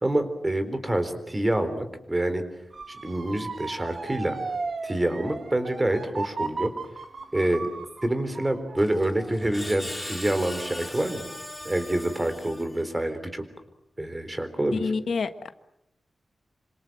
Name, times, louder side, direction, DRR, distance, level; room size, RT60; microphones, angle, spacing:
voice 1, 0.0-2.4 2.9-4.4 4.8-6.7 7.3-7.7 8.0-11.2 11.6-13.4 14.0-14.8, right 1 dB, 20° right, 9 dB, 4.0 m, -27 dB
Motor vehicle (road) / Siren, 2.7-11.6 12.1-12.5, right 4 dB, 50° right, 1.8 m, -37 dB
Screech, 8.8-13.1, left 1 dB, 10° left, 3.8 m, -39 dB
voice 2, 14.7-15.5, left 5 dB, 75° left, 10 dB, 1.4 m, -28 dB
27.0 x 26.0 x 7.8 m, 0.84 s
wide cardioid pair, 115°, 0 cm